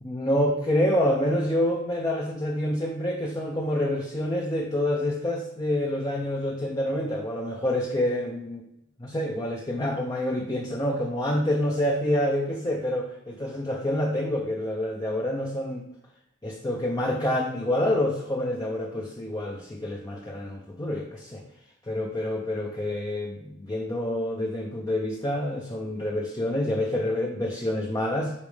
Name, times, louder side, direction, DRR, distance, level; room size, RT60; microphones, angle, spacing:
voice 1, 0.0-8.6 9.0-15.9 16.4-21.4 21.9-28.3, left 1 dB, 20° left, 0 dB, 0.6 m, -27 dB
8.3 x 5.2 x 3.4 m, 0.84 s
head